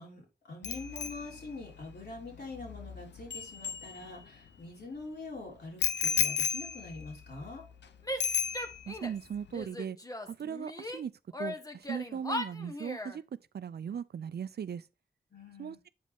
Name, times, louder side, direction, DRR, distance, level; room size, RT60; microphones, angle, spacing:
voice 1, 0.0-7.6 15.3-15.8, left 3 dB, 65° left, 3.9 m, -44 dB
Bicycle bell, 0.6-4.5 5.8-7.8 8.2-9.1 9.3-9.6, left 7 dB, 85° left, 0.7 m, -34 dB
Female speech woman speaking / Yell, 8.0-9.2 9.5-11.0 11.3-13.2, left 1 dB, 20° left, 1.1 m, -38 dB
voice 2, 8.9-10.0 10.3-11.1 11.4-13.2 13.5-14.8 15.6-15.9, right 8 dB, 65° right, 0.5 m, -38 dB
7.9 x 5.1 x 3.5 m
cardioid pair, 45°, 18 cm